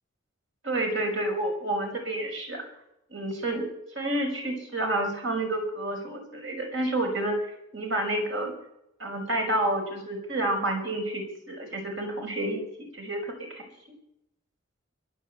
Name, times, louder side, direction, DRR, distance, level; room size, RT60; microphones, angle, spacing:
voice 1, 0.6-2.6 3.1-3.7 3.9-7.4 7.7-8.5 9.0-14.0, right 1 dB, 70° right, 3 dB, 5.8 m, -29 dB
22.5 x 7.9 x 8.2 m, 0.83 s
head